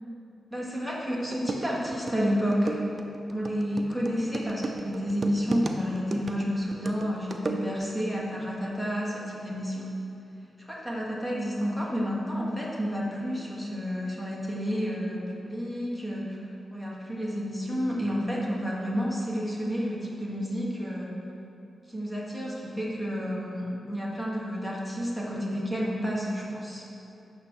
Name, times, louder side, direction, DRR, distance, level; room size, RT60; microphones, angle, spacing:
voice 1, 0.5-2.8 3.3-9.9 10.7-16.4 16.7-21.1 21.9-26.9, equal, 10° left, -4 dB, 1.4 m, -30 dB
sound 1, 0.9-1.0 1.3-8.0, right 3 dB, 35° right, 0.6 m, -35 dB
9.4 x 6.1 x 4.5 m, 2.9 s
wide cardioid pair, 110°, 0 cm